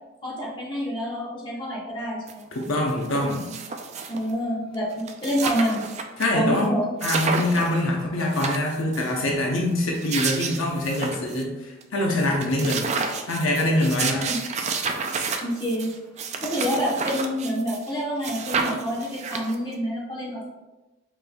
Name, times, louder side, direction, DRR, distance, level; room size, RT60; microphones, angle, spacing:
voice 1, 0.2-2.5 4.1-5.8 6.3-6.8 14.0-14.4 15.4-15.9 16.3-20.5, equal, 25° left, -6 dB, 1.2 m, -27 dB
sound 1, 2.3-2.4 2.6-4.3 4.7-4.8 5.0-6.3 6.6-6.7 7.0-7.8 8.2-9.1 9.8-11.4 11.8-11.9 12.2-17.9 18.2-19.7, right 5 dB, 35° right, 0.3 m, -30 dB
voice 2, 2.5-3.5 6.2-6.8 7.0-12.9 13.3-14.3, left 1 dB, 80° left, 0 dB, 0.7 m, -24 dB
5.0 x 3.3 x 2.2 m, 1.1 s
head